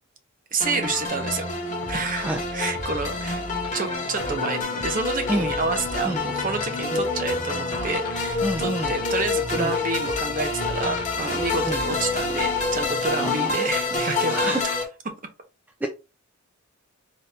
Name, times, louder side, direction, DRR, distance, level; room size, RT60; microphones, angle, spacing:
voice 1, 0.5-1.5 1.9-3.4 3.7-14.8, right 3 dB, 35° right, 0.8 m, -29 dB
sound 1, 0.6-14.8, left 3 dB, 35° left, 1.1 m, -27 dB
sound 2, 1.0-13.0, left 2 dB, 70° left, 0.9 m, -40 dB
voice 2, 8.4-8.9 9.6-9.7 11.6-11.8 13.2-13.7 14.3-14.6 15.8-15.9, right 1 dB, 5° right, 0.3 m, -27 dB
4.1 x 2.5 x 3.3 m
head